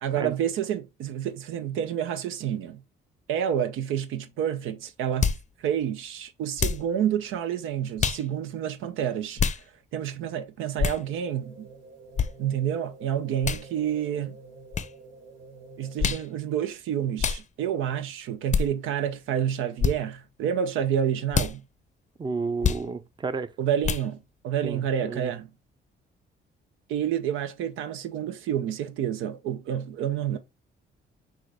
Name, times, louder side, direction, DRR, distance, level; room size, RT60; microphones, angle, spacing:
voice 1, 0.0-2.8 3.3-5.3 5.6-9.4 9.9-11.7 12.4-14.4 15.8-21.6 23.6-24.2 24.4-25.5 26.9-30.4, right 9 dB, 90° right, 0.6 m, -29 dB
sound 1, 5.2-5.4 6.6-6.9 8.0-8.2 9.4-9.6 10.8-11.0 12.2-12.3 13.4-13.6 14.7-14.9 16.0-16.3 17.2-17.4 18.5-18.7 19.8-20.0 21.3-21.5 22.6-22.8 23.8-24.1, left 6 dB, 35° left, 0.5 m, -25 dB
sound 2, 11.0-16.4, right 3 dB, 60° right, 3.1 m, -48 dB
voice 2, 22.2-23.5 24.6-25.3, right 4 dB, 25° right, 0.5 m, -32 dB
6.2 x 2.5 x 3.3 m
cardioid pair, 90°, 20 cm